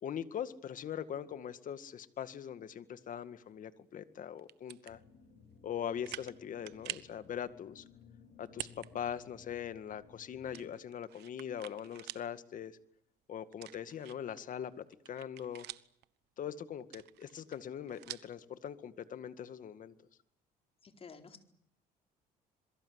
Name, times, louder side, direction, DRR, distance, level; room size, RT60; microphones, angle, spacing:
voice 1, 0.0-5.0 5.6-7.8 8.4-12.8 13.3-15.7 16.4-19.9, left 9 dB, 50° left, 12 dB, 2.0 m, -41 dB
sound 1, 4.4-4.9 5.5-5.6 6.0-6.4 6.7-7.1 8.5-8.9 9.3-9.4 10.5-12.3 12.7-12.8 13.5-14.4 14.8-16.0 16.8-18.4, right 16 dB, 80° right, 1.1 m, -46 dB
sound 2, 4.9-10.7, left 6 dB, 80° left, 5.9 m, -59 dB
voice 2, 20.8-21.4, left 5 dB, 35° left, 5 dB, 4.4 m, -52 dB
27.0 x 22.5 x 8.2 m, 0.71 s
cardioid pair, 110°, 17 cm